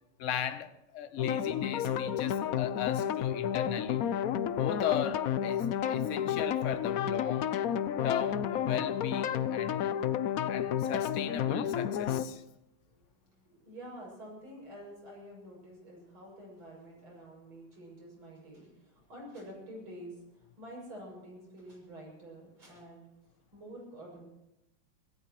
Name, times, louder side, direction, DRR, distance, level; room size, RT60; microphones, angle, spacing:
voice 1, 0.2-4.0 4.6-7.5 8.0-9.9 10.5-12.4, left 9 dB, 50° left, 0.9 m, -37 dB
sound 1, 1.2-12.3, left 9 dB, 75° left, 0.8 m, -31 dB
voice 2, 12.9-24.3, right 1 dB, 70° right, 7.8 m, -49 dB
26.0 x 16.5 x 3.1 m
omnidirectional pair, 2.4 m